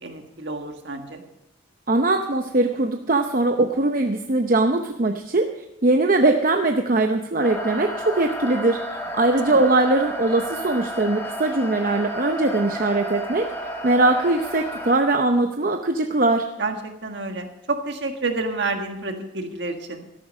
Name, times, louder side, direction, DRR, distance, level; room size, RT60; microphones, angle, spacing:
voice 1, 0.0-1.2 16.6-20.0, right 3 dB, 60° right, 5 dB, 1.6 m, -29 dB
voice 2, 1.9-13.5 13.8-16.5, right 2 dB, 45° right, 5 dB, 0.7 m, -21 dB
sound 1, 7.4-14.9, equal, 15° left, 1.5 m, -32 dB
13.5 x 11.0 x 5.4 m, 0.84 s
head